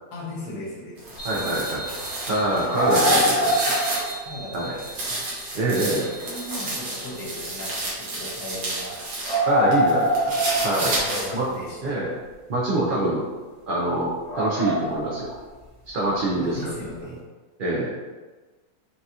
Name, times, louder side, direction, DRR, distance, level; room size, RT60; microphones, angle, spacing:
voice 1, 0.1-2.0 4.2-5.2 5.7-9.0 11.0-12.0 16.4-17.2, left 1 dB, 80° left, -7 dB, 1.5 m, -38 dB
sound 1, 1.0-4.1 4.5-9.4 9.7-11.5, right 2 dB, 85° right, 1.7 m, -30 dB
sound 2, 1.2-7.8, right 2 dB, 25° left, 1.2 m, -40 dB
voice 2, 1.2-1.8 2.3-3.7 4.5-4.7 5.5-6.1 9.5-11.0 11.3-11.5 11.8-12.1 12.5-13.3 13.7-15.3 15.9-16.7 17.6-17.9, right 1 dB, 65° right, -6 dB, 0.5 m, -25 dB
sound 3, 2.7-4.3 4.7-4.8 5.9-6.0 6.5-6.6 6.9-7.0 9.3-11.5 14.3-15.3 16.7-16.8, equal, 55° left, 1.5 m, -24 dB
5.7 x 2.4 x 2.7 m, 1.3 s
omnidirectional pair, 1.7 m